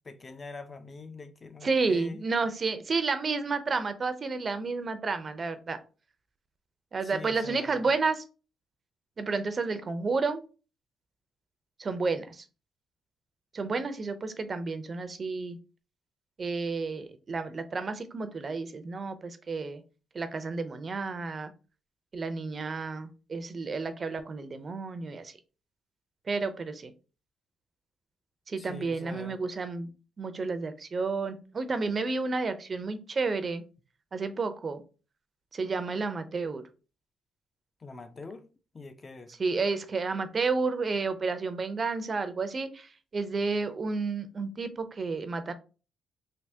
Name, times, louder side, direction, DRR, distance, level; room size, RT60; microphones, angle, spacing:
voice 1, 0.1-2.2 7.0-7.9 28.6-29.4 37.8-38.5 38.7-39.3, left 3 dB, 30° left, 0.4 m, -44 dB
voice 2, 1.6-5.8 6.9-8.2 9.2-10.4 11.8-12.4 13.5-15.6 16.4-19.8 20.1-21.5 22.1-25.3 26.3-26.9 28.5-29.9 30.2-33.6 34.1-34.8 35.5-36.6 39.4-45.5, right 4 dB, 40° right, 0.4 m, -31 dB
3.4 x 2.7 x 2.7 m
cardioid pair, 90°, 0 cm